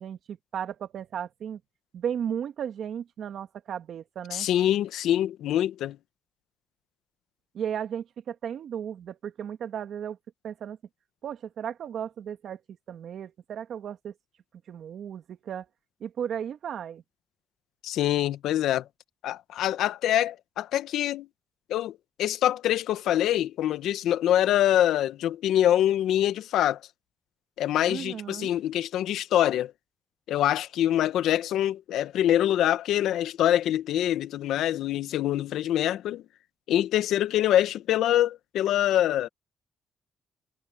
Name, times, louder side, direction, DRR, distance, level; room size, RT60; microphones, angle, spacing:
voice 1, 0.0-1.6 1.9-4.5 7.5-10.2 10.4-10.8 11.2-14.1 14.7-15.7 16.0-17.0 27.9-28.5, right 8 dB, 65° right, 2.1 m, -35 dB
voice 2, 4.3-6.0 17.8-18.8 19.2-21.3 21.7-26.8 27.6-29.7 30.3-36.2 36.7-39.3, left 12 dB, 80° left, 1.0 m, -25 dB
cardioid pair, 90°, 0 cm